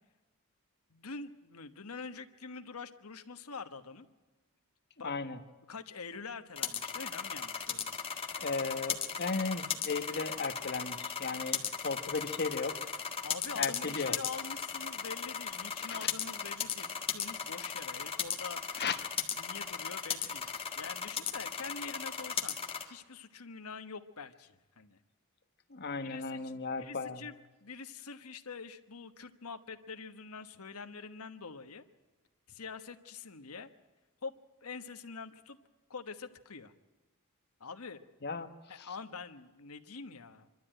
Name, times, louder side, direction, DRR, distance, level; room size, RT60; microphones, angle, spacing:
voice 1, 0.9-4.0 5.0-5.1 5.7-7.9 13.2-18.6 19.4-20.5 20.8-22.6 22.9-25.0 26.0-26.5 26.8-27.3 27.6-31.8 32.5-33.7 34.2-34.3 34.6-35.6 35.9-36.7 37.6-38.0 38.7-40.5, left 4 dB, 70° left, 8 dB, 1.3 m, -45 dB
voice 2, 5.0-5.4 8.4-12.8 13.6-14.2 15.8-16.1 18.8-19.0 25.7-27.2 38.2-38.9, left 4 dB, 50° left, 9 dB, 1.3 m, -36 dB
sound 1, 6.5-22.8, left 7 dB, 25° left, 1.7 m, -37 dB
25.5 x 12.5 x 9.0 m, 1.2 s
head